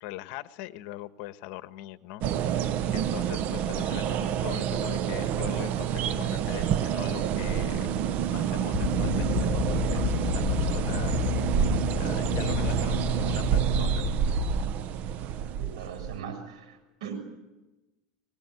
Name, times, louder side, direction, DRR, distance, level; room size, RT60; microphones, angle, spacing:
voice 1, 0.0-11.1 12.0-14.1, left 15 dB, 60° left, 11 dB, 1.4 m, -41 dB
sound 1, 2.2-16.2, right 9 dB, 50° right, 1.0 m, -28 dB
sound 2, 3.5-12.1, right 7 dB, 70° right, 7.7 m, -51 dB
sound 3, 8.7-14.6, left 13 dB, 40° left, 3.1 m, -31 dB
voice 2, 15.6-17.2, right 7 dB, 85° right, 8 dB, 7.0 m, -39 dB
22.5 x 21.0 x 9.7 m, 1.0 s
supercardioid pair, 120°, 3 cm